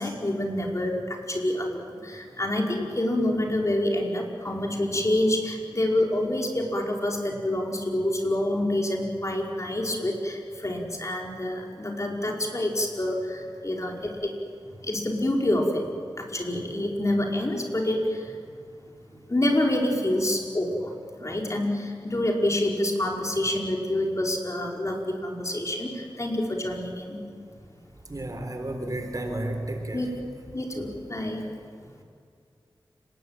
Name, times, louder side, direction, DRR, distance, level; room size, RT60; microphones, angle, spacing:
voice 1, 0.0-14.3 14.8-15.8 16.2-18.4 19.3-20.9 21.2-27.2 29.9-30.1 30.5-31.4, left 1 dB, 35° left, 0 dB, 5.1 m, -27 dB
voice 2, 28.1-30.0, right 1 dB, 45° right, 5 dB, 4.0 m, -32 dB
30.0 x 19.5 x 9.1 m, 2.2 s
wide cardioid pair, 65°, 9 cm